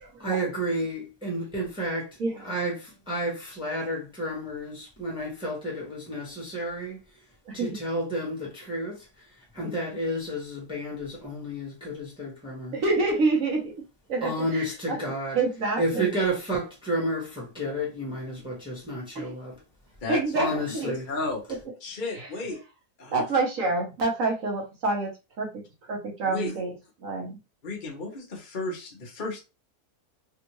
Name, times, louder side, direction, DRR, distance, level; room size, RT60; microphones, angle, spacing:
voice 1, 0.2-2.1 2.4-7.0 7.5-9.1 9.5-12.8 14.2-15.4 15.8-19.6 20.3-21.1, right 1 dB, 5° right, 1.2 m, -31 dB
voice 2, 7.5-7.8 12.7-13.7 14.1-15.0 15.3-16.1 19.1-19.3 20.1-20.9 21.5-21.6 22.2-22.3 23.1-25.1 25.4-25.6 25.9-26.7 27.0-27.3, right 3 dB, 60° right, 1.3 m, -27 dB
voice 3, 20.8-21.4 21.8-22.6 23.0-23.2 26.2-26.5 27.2-27.3 27.6-29.4, left 2 dB, 40° left, 0.9 m, -33 dB
3.5 x 2.5 x 3.0 m
omnidirectional pair, 1.7 m